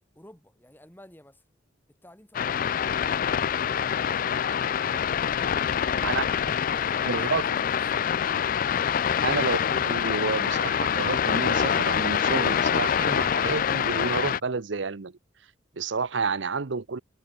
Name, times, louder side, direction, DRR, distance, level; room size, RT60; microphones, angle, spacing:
voice 1, 0.2-1.4 1.9-3.2 5.2-8.2, left 1 dB, 10° left, 5.0 m, -53 dB
sound 1, 2.3-14.4, left 8 dB, 45° left, 0.4 m, -25 dB
voice 2, 7.1-7.4 9.2-15.1 15.8-17.0, right 4 dB, 70° right, 0.8 m, -30 dB
head